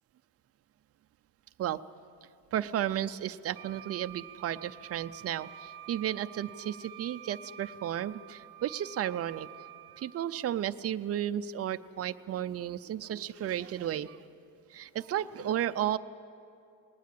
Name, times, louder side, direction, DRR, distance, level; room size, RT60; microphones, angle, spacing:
voice 1, 2.5-9.5 10.0-14.2 14.7-16.0, right 11 dB, 40° right, 10 dB, 0.5 m, -33 dB
Wind instrument woodwind instrument, 3.5-10.3, right 11 dB, 75° right, 0.7 m, -49 dB
20.0 x 19.0 x 8.4 m, 2.7 s
cardioid pair, 175°, 38 cm